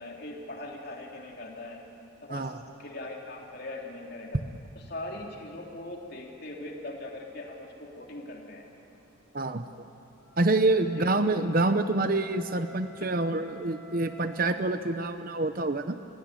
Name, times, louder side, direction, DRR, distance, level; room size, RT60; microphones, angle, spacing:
voice 1, 0.0-1.8 2.2-2.5 2.8-4.4 4.7-8.7 10.9-11.1, left 2 dB, 50° left, 0 dB, 3.3 m, -40 dB
voice 2, 9.3-9.9 10.4-16.0, right 2 dB, 45° right, 9 dB, 0.8 m, -27 dB
Wind instrument woodwind instrument, 10.1-14.8, left 4 dB, 80° left, 5.7 m, -51 dB
28.5 x 17.0 x 9.9 m, 2.7 s
head